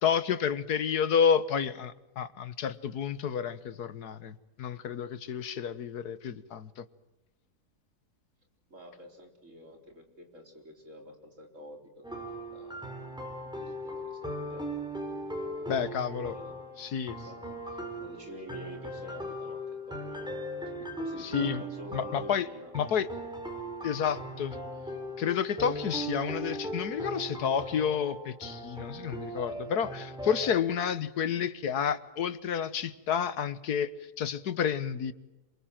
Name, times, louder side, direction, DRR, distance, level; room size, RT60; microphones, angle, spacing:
voice 1, 0.0-6.8 15.7-16.3 16.8-17.1 21.2-21.6 21.9-22.5 22.7-23.1 23.8-24.6 25.2-33.9 34.2-35.1, left 7 dB, 75° left, 14 dB, 1.7 m, -30 dB
voice 2, 8.7-12.2 12.5-13.3 13.5-14.7 15.2-16.5 17.2-17.4 18.0-20.3 20.6-22.7, right 1 dB, 50° right, 3 dB, 4.6 m, -48 dB
sound 1, 12.0-30.5, equal, ahead, 4.7 m, -39 dB
28.0 x 22.5 x 7.6 m, 1.0 s
omnidirectional pair, 1.7 m